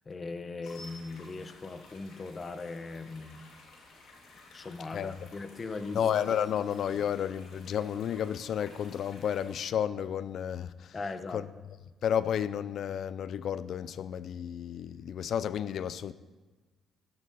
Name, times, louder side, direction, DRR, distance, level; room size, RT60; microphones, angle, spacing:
voice 1, 0.1-3.4 4.5-6.0 10.9-11.4, left 3 dB, 35° left, 1.1 m, -39 dB
sound 1, 0.6-9.6, left 2 dB, 85° left, 4.0 m, -54 dB
voice 2, 4.9-5.3 5.9-11.0 11.3-11.5 12.0-16.1, left 9 dB, 65° left, 0.5 m, -32 dB
15.0 x 13.0 x 4.2 m
cardioid pair, 90°, 0 cm